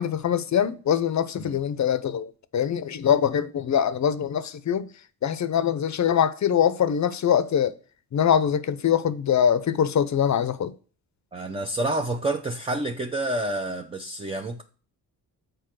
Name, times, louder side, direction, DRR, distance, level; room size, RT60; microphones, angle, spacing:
voice 1, 0.0-4.9 5.2-7.7 8.1-10.7, left 8 dB, 45° left, 0.7 m, -23 dB
voice 2, 11.3-14.6, right 2 dB, 15° right, 0.7 m, -28 dB
6.8 x 4.6 x 6.1 m
cardioid pair, 90°, 40 cm